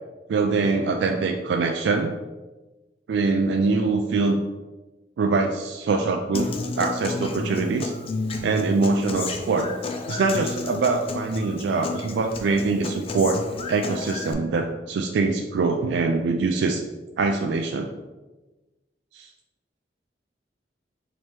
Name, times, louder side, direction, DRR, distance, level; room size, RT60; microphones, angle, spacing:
voice 1, 0.3-2.1 3.1-4.4 5.2-6.5 6.8-7.9 8.4-9.7 10.1-13.4 13.7-16.8 17.2-17.9 19.1-19.3, right 3 dB, 75° right, 3 dB, 0.3 m, -23 dB
Human voice / Acoustic guitar, 6.3-14.3, left 3 dB, 30° left, 0.4 m, -32 dB
4.4 x 2.9 x 3.3 m, 1.2 s
head